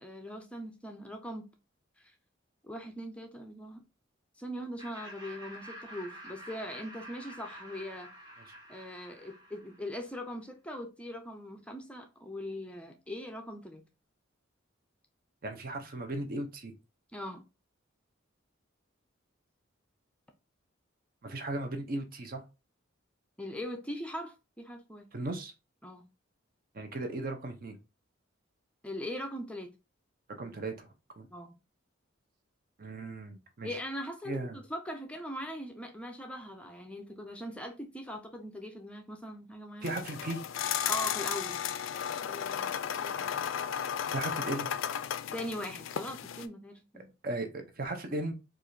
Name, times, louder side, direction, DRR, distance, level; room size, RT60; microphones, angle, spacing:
voice 1, 0.0-1.5 2.0-2.1 2.6-3.8 4.4-8.1 8.7-13.8 17.1-17.4 23.4-25.1 25.8-26.1 28.8-29.7 31.3-31.5 33.6-39.9 40.8-41.6 42.2-42.8 43.0-43.5 45.3-47.1, left 1 dB, 5° left, 0.5 m, -41 dB
Laughter, 4.8-10.1, right 1 dB, 25° right, 1.3 m, -49 dB
voice 2, 15.4-16.7 21.2-22.4 25.1-25.5 26.7-27.8 30.4-30.9 31.2-31.3 32.8-33.8 34.2-34.6 39.8-40.4 44.1-44.7 47.2-48.3, right 2 dB, 50° right, 0.7 m, -36 dB
sound 1, 39.8-46.5, left 9 dB, 90° left, 0.4 m, -34 dB
4.7 x 2.4 x 2.6 m
head